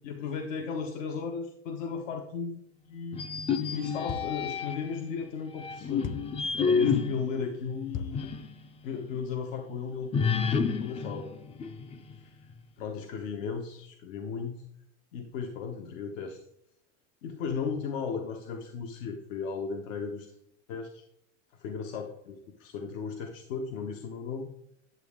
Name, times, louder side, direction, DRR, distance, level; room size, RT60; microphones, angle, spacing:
voice 1, 0.0-2.6 2.9-3.2 3.6-6.1 6.6-8.3 8.8-11.3 12.2-12.4 12.8-14.5 15.1-16.4 17.2-20.3 20.7-21.0 21.6-24.5, left 5 dB, 85° left, 3 dB, 1.1 m, -35 dB
sound 1, 3.1-5.0 5.6-8.5 8.9-9.0 10.1-12.2, left 5 dB, 20° left, 0.3 m, -30 dB
sound 2, 4.1-4.5 6.0-6.4 7.9-8.3, left 6 dB, 55° left, 0.9 m, -38 dB
10.5 x 7.1 x 3.6 m, 0.74 s
supercardioid pair, 120°, 37 cm